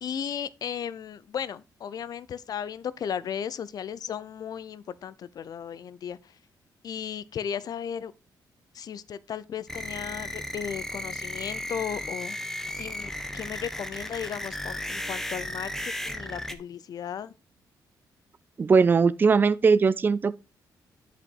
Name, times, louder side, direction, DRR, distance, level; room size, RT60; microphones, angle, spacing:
voice 1, 0.0-6.4 6.8-8.1 8.7-12.4 12.8-17.3, left 8 dB, 60° left, 0.6 m, -35 dB
sound 1, 9.7-16.5, left 1 dB, 5° left, 1.1 m, -35 dB
voice 2, 18.6-20.3, right 5 dB, 25° right, 0.4 m, -20 dB
10.5 x 5.1 x 4.6 m
cardioid pair, 135°, 8 cm